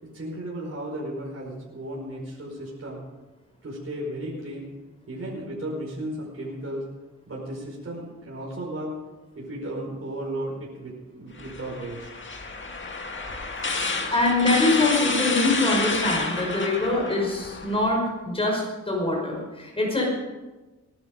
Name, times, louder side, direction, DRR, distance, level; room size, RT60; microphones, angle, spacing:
voice 1, 0.0-3.0 3.6-4.7 5.1-6.9 7.3-9.0 9.3-12.1, right 1 dB, 50° right, -3 dB, 4.8 m, -34 dB
sound 1, 11.4-17.9, left 3 dB, 40° left, 1.9 m, -30 dB
voice 2, 13.7-20.0, left 2 dB, 20° left, -2 dB, 5.5 m, -24 dB
19.0 x 11.5 x 5.2 m, 1.1 s
cardioid pair, 80°, 30 cm